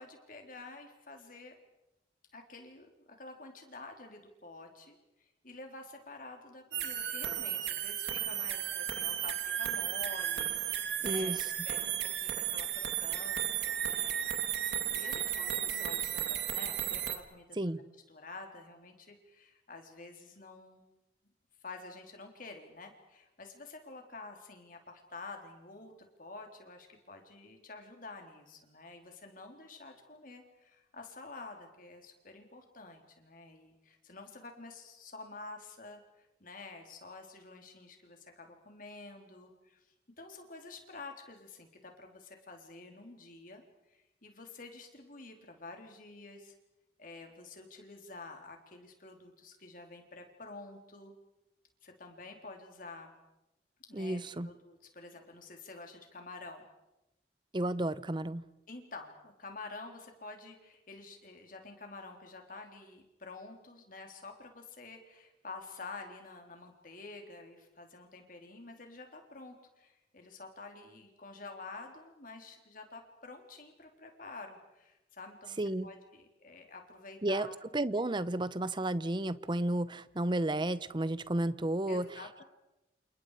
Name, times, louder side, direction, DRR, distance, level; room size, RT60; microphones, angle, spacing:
voice 1, 0.0-1.5 2.3-17.5 18.1-20.9 21.6-25.9 26.2-39.8 40.2-43.6 43.9-46.5 47.0-51.1 51.8-53.1 53.9-56.6 58.7-77.6 81.9-82.4, left 3 dB, 50° left, 3 dB, 3.7 m, -49 dB
sound 1, 6.7-17.2, right 10 dB, 70° right, 1.9 m, -34 dB
voice 2, 11.0-11.5 17.6-17.8 53.9-54.5 57.5-58.4 75.6-75.9 77.2-77.5 77.7-82.1, right 1 dB, 25° right, 16 dB, 0.7 m, -32 dB
29.0 x 28.5 x 5.0 m, 0.95 s
head